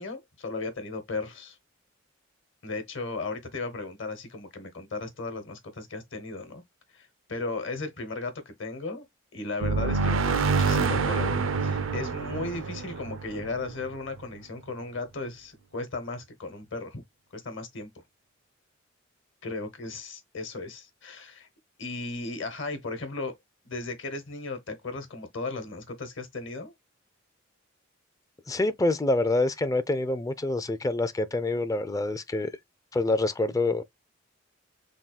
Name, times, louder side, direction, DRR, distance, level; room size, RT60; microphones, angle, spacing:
voice 1, 0.0-1.6 2.6-6.6 6.9-9.0 9.3-11.3 11.6-17.0 17.3-17.9 19.4-21.5 21.8-23.4 23.6-26.7, left 3 dB, 65° left, 1.1 m, -36 dB
sound 1, 9.6-14.2, right 4 dB, 75° right, 0.5 m, -27 dB
voice 2, 28.5-32.5 32.9-33.8, left 2 dB, 15° left, 0.4 m, -26 dB
3.6 x 2.3 x 3.9 m
head